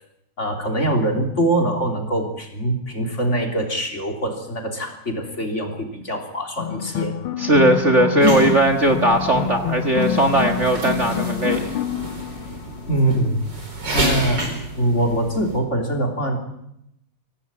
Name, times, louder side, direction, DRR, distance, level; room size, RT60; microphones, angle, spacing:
voice 1, 0.4-7.2 12.9-13.4 13.9-14.5 14.8-16.4, right 1 dB, 30° left, 3 dB, 3.6 m, -23 dB
sound 1, 6.6-13.2, left 11 dB, 80° left, 2.1 m, -27 dB
voice 2, 7.4-11.7, right 1 dB, 35° right, 8 dB, 1.8 m, -18 dB
sound 2, 8.2-15.6, right 1 dB, 55° right, 5.2 m, -29 dB
24.0 x 17.5 x 8.8 m, 0.80 s
omnidirectional pair, 2.3 m